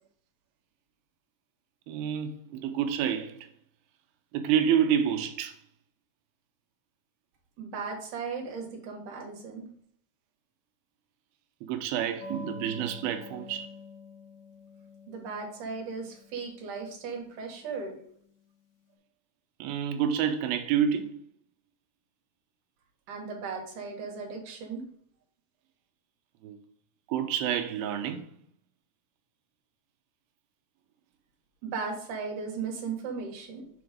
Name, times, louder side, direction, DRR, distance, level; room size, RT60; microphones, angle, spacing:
voice 1, 1.9-3.5 4.3-5.6 11.6-13.7 19.6-21.2 26.4-26.6 27.1-28.3, right 9 dB, 85° right, 2.5 m, -28 dB
voice 2, 7.6-9.7 15.1-18.0 23.1-24.8 31.6-33.7, right 5 dB, 65° right, 2.7 m, -36 dB
sound 1, 12.2-18.4, left 4 dB, 70° left, 2.6 m, -48 dB
6.9 x 3.9 x 5.0 m
omnidirectional pair, 4.2 m